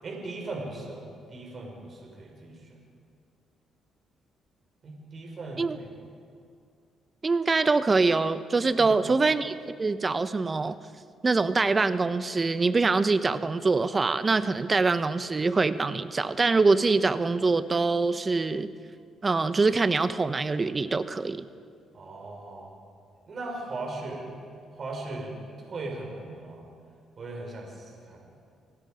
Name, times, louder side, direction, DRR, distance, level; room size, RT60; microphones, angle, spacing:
voice 1, 0.0-2.8 4.8-6.0 8.8-9.2 21.9-22.7 23.3-24.3 24.7-25.4 25.6-26.7 27.2-28.2, right 2 dB, 45° right, 0 dB, 5.3 m, -38 dB
voice 2, 7.2-9.5 9.8-10.8 11.2-18.7 19.2-21.5, right 3 dB, 30° right, 12 dB, 0.9 m, -24 dB
29.5 x 18.5 x 5.2 m, 2.2 s
cardioid pair, 90°, 0 cm